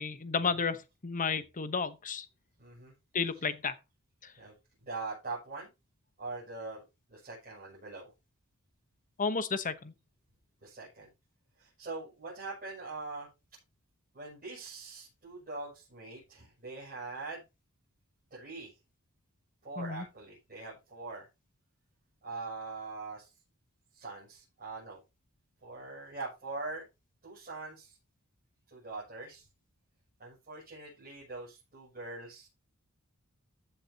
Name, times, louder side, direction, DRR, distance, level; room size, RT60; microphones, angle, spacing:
voice 1, 0.0-2.3 3.1-3.8 4.2-4.3 9.2-9.9 19.8-20.0, left 5 dB, 35° left, 1.0 m, -32 dB
voice 2, 2.6-2.9 4.4-4.5 4.8-5.7 6.2-6.8 7.1-8.1 10.6-11.1 11.6-13.3 14.1-17.4 18.3-18.7 19.6-21.3 22.2-23.3 23.9-25.0 25.6-26.8 27.2-28.0 28.7-29.5 30.2-32.5, right 3 dB, 40° right, 6.7 m, -42 dB
15.0 x 7.6 x 2.9 m
head